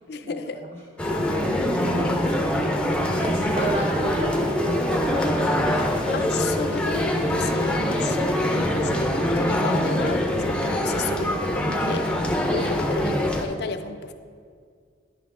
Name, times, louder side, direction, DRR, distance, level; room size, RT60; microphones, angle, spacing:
voice 1, 0.1-0.7 6.1-12.1 12.5-14.1, left 4 dB, 55° left, 9 dB, 0.4 m, -33 dB
sound 1, 1.0-13.5, left 1 dB, 5° left, 0.5 m, -24 dB
voice 2, 1.8-2.9 3.2-6.3 11.7-12.0, right 1 dB, 30° right, -2 dB, 0.7 m, -32 dB
10.5 x 5.9 x 3.7 m, 2.1 s
head